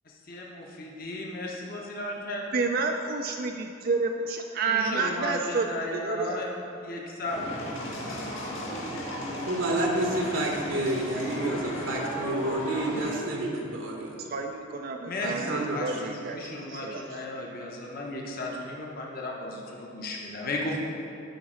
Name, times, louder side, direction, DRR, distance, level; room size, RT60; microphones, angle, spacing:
voice 1, 0.1-2.5 4.7-6.5 6.8-7.4 15.1-20.8, left 1 dB, 45° left, -2 dB, 1.0 m, -35 dB
voice 2, 2.5-5.7 5.9-6.4 14.2-16.4 16.8-17.0, right 4 dB, 45° right, 3 dB, 0.4 m, -29 dB
sound 1, 7.2-13.1, equal, 75° left, 1.8 m, -35 dB
voice 3, 9.5-14.2 15.2-16.0 16.4-16.8, right 1 dB, 70° right, 0 dB, 1.0 m, -30 dB
11.0 x 4.0 x 6.2 m, 2.7 s
head